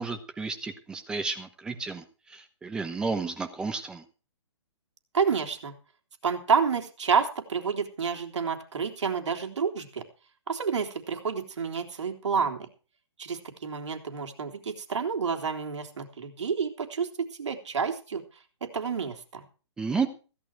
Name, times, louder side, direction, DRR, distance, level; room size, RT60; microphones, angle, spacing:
voice 1, 0.0-2.0 2.3-4.0 19.8-20.1, right 4 dB, 5° right, 6 dB, 0.9 m, -32 dB
voice 2, 5.1-5.7 6.2-10.0 10.5-12.7 13.2-17.1 17.4-18.2 18.6-19.4, right 6 dB, 70° right, 4 dB, 3.4 m, -29 dB
16.0 x 11.5 x 4.7 m, 0.36 s
hypercardioid pair, 165°, 16 cm